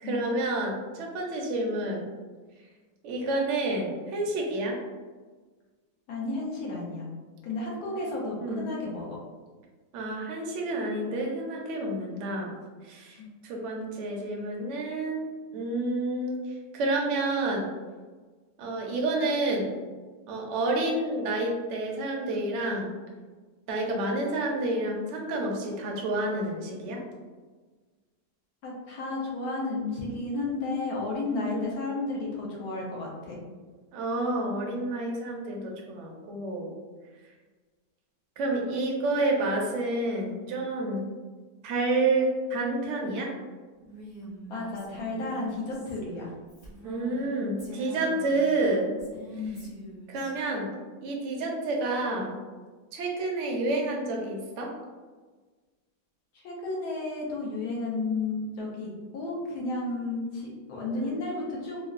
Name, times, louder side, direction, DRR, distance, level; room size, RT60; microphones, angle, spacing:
voice 1, 0.0-2.1 3.0-4.8 8.4-8.7 9.9-12.5 12.8-15.3 15.5-16.4 16.7-17.7 18.6-19.7 20.3-22.9 23.7-27.0 31.5-31.6 33.9-36.7 38.4-41.1 41.6-43.3 46.8-48.9 50.1-50.7 51.0-52.4 52.9-54.7 60.9-61.0, right 2 dB, 70° right, 0 dB, 0.7 m, -29 dB
voice 2, 6.1-7.1 7.4-9.2 13.2-13.3 28.6-33.4 44.5-46.3 49.3-49.7 56.3-61.8, left 3 dB, 70° left, -3 dB, 1.1 m, -32 dB
Female speech woman speaking, 43.8-47.3 47.6-50.3, right 1 dB, 15° left, 0.7 m, -45 dB
3.6 x 2.0 x 2.4 m, 1.4 s
omnidirectional pair, 1.8 m